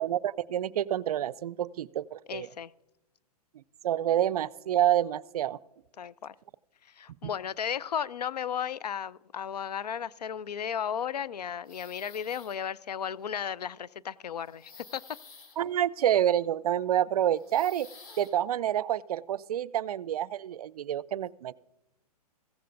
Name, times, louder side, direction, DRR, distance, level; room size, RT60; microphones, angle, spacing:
voice 1, 0.0-2.5 3.8-5.6 15.6-17.9 18.2-21.5, right 11 dB, 70° right, 22 dB, 0.4 m, -28 dB
voice 2, 2.3-2.7 6.0-6.3 6.9-15.2, left 8 dB, 85° left, 19 dB, 0.4 m, -34 dB
sound 1, 11.7-12.7 13.0-13.4 14.4-16.4 17.3-18.3, left 4 dB, 70° left, 3.6 m, -53 dB
15.5 x 15.0 x 2.6 m, 0.95 s
hypercardioid pair, 125°, 20 cm